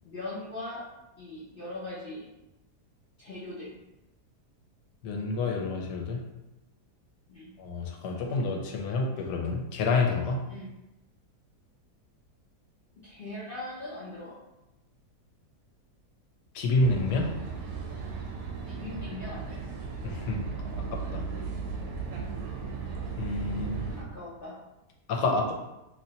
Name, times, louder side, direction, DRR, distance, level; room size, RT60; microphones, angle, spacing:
voice 1, 0.0-0.8 1.2-2.3 3.2-3.8 7.3-7.5 10.5-10.7 13.0-14.4 18.7-19.6 23.5-24.5, left 2 dB, 65° left, -8 dB, 0.5 m, -40 dB
voice 2, 5.0-6.2 7.6-10.4 16.5-17.3 20.0-20.4 20.9-21.2 23.2-23.9 25.1-25.5, left 3 dB, 85° left, 1 dB, 1.2 m, -28 dB
sound 1, 16.8-24.0, right 5 dB, 70° right, 1.1 m, -36 dB
3.1 x 2.9 x 2.8 m, 0.95 s
omnidirectional pair, 1.8 m